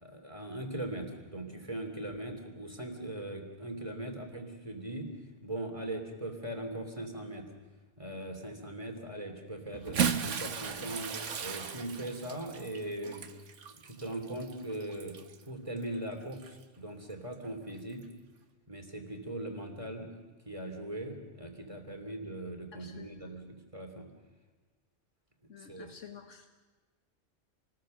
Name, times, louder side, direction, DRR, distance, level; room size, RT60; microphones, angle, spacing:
voice 1, 0.0-5.1 5.4-7.4 8.0-11.1 11.4-13.2 13.7-15.2 15.5-18.0 18.7-20.2 20.5-24.1 25.6-25.9, right 1 dB, 25° right, 4 dB, 2.9 m, -40 dB
Bathtub (filling or washing) / Splash splatter, 9.7-15.4 16.3-16.5 17.9-18.0, right 7 dB, 75° right, 1.4 m, -36 dB
voice 2, 22.7-23.3 25.5-26.5, left 7 dB, 80° left, 5 dB, 1.7 m, -51 dB
28.0 x 20.0 x 6.6 m, 1.3 s
omnidirectional pair, 1.3 m